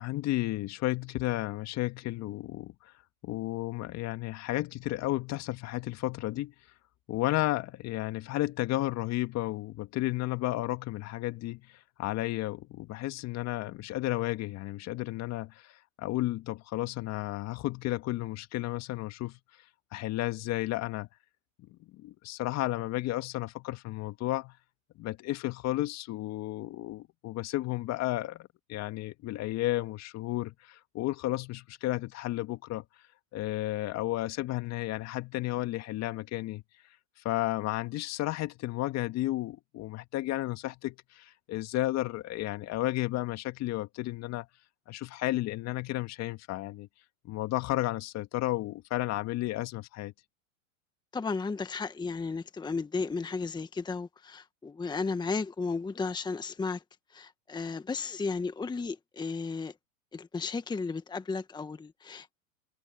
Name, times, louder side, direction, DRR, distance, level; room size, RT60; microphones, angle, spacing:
voice 1, 0.0-2.9 3.2-6.5 7.1-19.4 19.9-21.1 21.9-24.6 25.0-32.8 33.3-36.6 37.2-44.5 44.9-46.9 47.2-50.1, left 16 dB, 40° left, 2.0 m, -33 dB
voice 2, 51.1-56.8 57.1-59.7 60.1-62.4, left 4 dB, 10° left, 1.2 m, -34 dB
hypercardioid pair, 105°, 40 cm